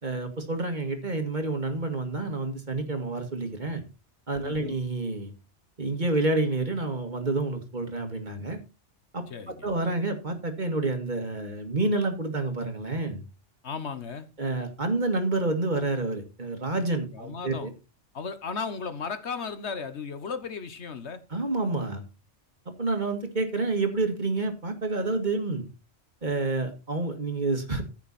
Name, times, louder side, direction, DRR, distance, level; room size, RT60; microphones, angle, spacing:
voice 1, 0.0-3.8 4.3-5.3 5.8-8.6 9.1-13.2 14.4-17.7 21.3-22.0 22.8-25.7 26.2-27.8, right 2 dB, 40° right, 2.1 m, -28 dB
voice 2, 4.4-4.8 9.3-9.7 13.6-14.3 17.1-17.7 18.1-21.2, left 5 dB, 65° left, 1.5 m, -35 dB
15.0 x 6.1 x 4.2 m
omnidirectional pair, 1.2 m